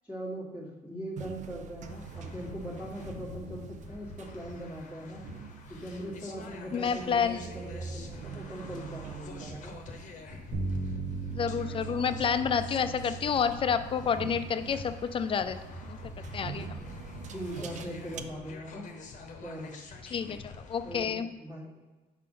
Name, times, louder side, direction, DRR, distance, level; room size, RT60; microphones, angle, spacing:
voice 1, 0.0-5.2 5.7-9.7 17.3-18.9 19.4-19.7 20.8-21.8, right 1 dB, 5° right, -7 dB, 1.3 m, -40 dB
sound 1, 1.2-18.2, right 6 dB, 45° right, 0.4 m, -46 dB
sound 2, 1.9-21.1, left 4 dB, 45° left, 0.9 m, -46 dB
voice 2, 6.7-7.4 11.3-15.6 15.9-16.0 16.3-16.6 20.1-21.3, left 7 dB, 30° left, 10 dB, 0.4 m, -29 dB
Bass guitar, 10.5-16.8, right 4 dB, 80° right, 1.0 m, -39 dB
6.1 x 4.2 x 3.8 m, 1.2 s
cardioid pair, 110°, 17 cm